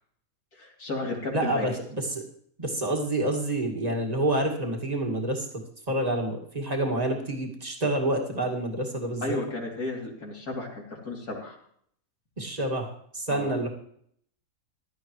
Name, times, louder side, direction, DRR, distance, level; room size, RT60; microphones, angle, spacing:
voice 1, 0.6-1.7 9.2-11.6 13.3-13.5, left 2 dB, 80° left, -2 dB, 3.5 m, -33 dB
voice 2, 1.3-2.2 2.6-5.5 5.9-9.4 12.4-13.7, right 1 dB, 25° right, 1 dB, 2.1 m, -28 dB
16.0 x 12.0 x 3.2 m, 0.65 s
omnidirectional pair, 1.5 m